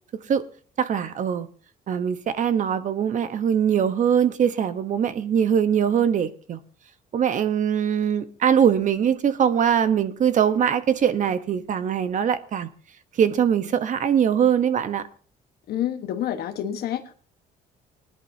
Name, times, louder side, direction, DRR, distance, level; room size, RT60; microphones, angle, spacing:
voice 1, 0.8-1.5 1.9-6.6 7.1-12.7 13.2-15.0, right 8 dB, 50° right, 1.1 m, -22 dB
voice 2, 15.7-17.1, left 10 dB, 65° left, 1.4 m, -28 dB
20.0 x 11.0 x 2.8 m
cardioid pair, 110°, 17 cm